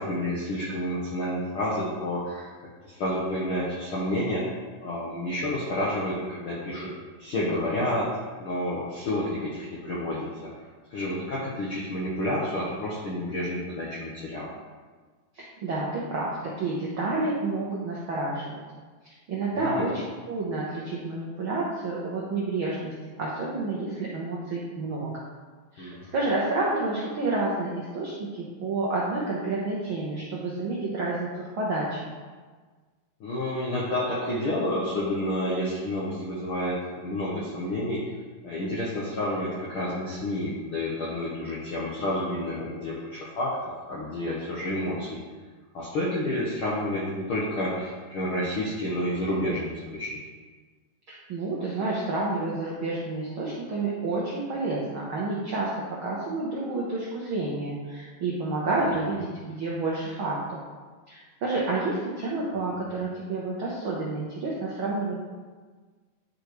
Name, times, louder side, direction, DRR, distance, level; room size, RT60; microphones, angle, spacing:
voice 1, 0.0-2.5 2.8-4.5 4.8-6.9 7.2-8.1 8.4-10.5 10.9-14.5 19.5-19.9 25.8-26.1 33.2-38.0 38.4-45.2 45.7-50.2 58.8-58.9 62.7-62.8, left 1 dB, 70° left, -6 dB, 1.2 m, -30 dB
voice 2, 15.3-18.6 19.0-25.1 25.7-32.1 51.1-55.7 56.0-60.6 61.1-65.3, right 2 dB, 75° right, -5 dB, 1.2 m, -29 dB
11.0 x 5.1 x 3.1 m, 1.4 s
omnidirectional pair, 3.9 m